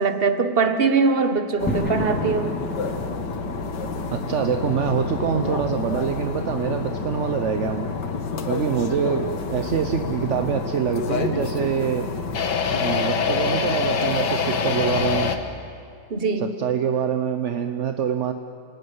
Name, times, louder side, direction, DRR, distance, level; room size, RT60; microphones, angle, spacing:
voice 1, 0.0-2.6 16.1-16.6, right 4 dB, 30° right, 8 dB, 1.4 m, -22 dB
sound 1, 1.6-15.4, left 5 dB, 60° left, 2.0 m, -27 dB
sound 2, 1.7-14.6, equal, 5° left, 2.7 m, -37 dB
voice 2, 4.1-7.9 8.5-12.1 12.8-15.3 16.4-18.3, right 8 dB, 50° right, 7 dB, 0.9 m, -25 dB
29.0 x 19.0 x 9.6 m, 2.4 s
omnidirectional pair, 2.2 m